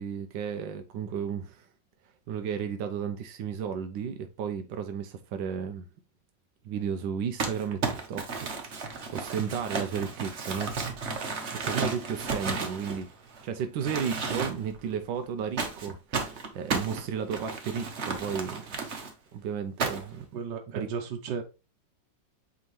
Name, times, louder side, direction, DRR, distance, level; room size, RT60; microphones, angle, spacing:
voice 1, 0.0-1.7 2.3-5.9 6.6-7.8 8.1-10.8 11.6-13.1 13.4-18.9 19.3-20.3 20.7-20.9, right 7 dB, 90° right, 1.4 m, -33 dB
Crumpling crinkling, 7.4-13.4 13.8-14.8 15.6-19.1 19.8-20.2, right 4 dB, 45° right, 1.2 m, -33 dB
voice 2, 20.3-21.4, right 6 dB, 70° right, 1.5 m, -35 dB
8.3 x 3.6 x 3.2 m
omnidirectional pair, 1.9 m